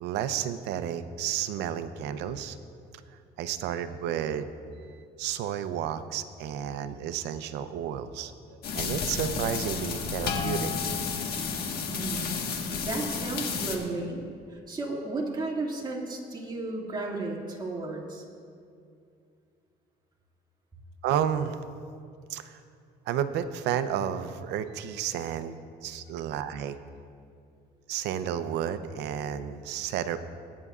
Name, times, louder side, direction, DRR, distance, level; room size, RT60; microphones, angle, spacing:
voice 1, 0.0-2.6 3.4-4.5 5.2-10.7 21.0-21.6 22.3-22.6 23.1-25.6 25.8-26.8 27.9-30.2, right 9 dB, 85° right, 11 dB, 0.6 m, -31 dB
sound 1, 8.6-13.8, left 5 dB, 65° left, 1.5 m, -31 dB
voice 2, 11.9-12.5 12.8-14.2 14.5-18.2, right 2 dB, 25° right, -2 dB, 2.2 m, -34 dB
20.5 x 9.6 x 2.4 m, 2.4 s
cardioid pair, 110°, 17 cm